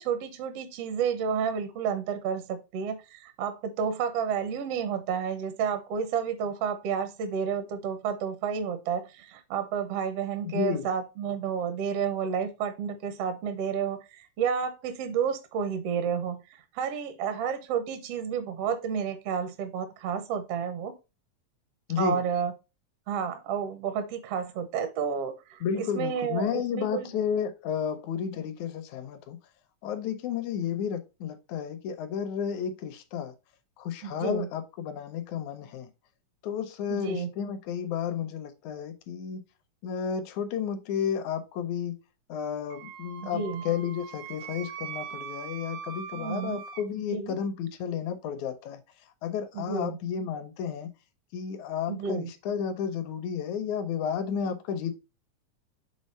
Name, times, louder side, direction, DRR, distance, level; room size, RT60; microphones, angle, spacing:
voice 1, 0.0-16.4 16.7-20.9 22.0-22.5 23.1-27.1 34.0-34.5 36.9-37.3 43.2-43.6 46.1-46.6 47.0-47.4 49.5-50.0 51.9-52.3 54.4-54.5, right 7 dB, 70° right, 1.4 m, -31 dB
voice 2, 10.5-10.9 21.9-22.2 25.6-29.4 29.8-33.3 33.8-35.9 36.4-39.4 39.8-42.0 42.3-48.8 49.2-50.9 51.3-54.9, left 7 dB, 75° left, 1.9 m, -32 dB
Wind instrument woodwind instrument, 42.7-46.9, right 8 dB, 90° right, 2.3 m, -41 dB
6.4 x 3.7 x 4.1 m
omnidirectional pair, 3.6 m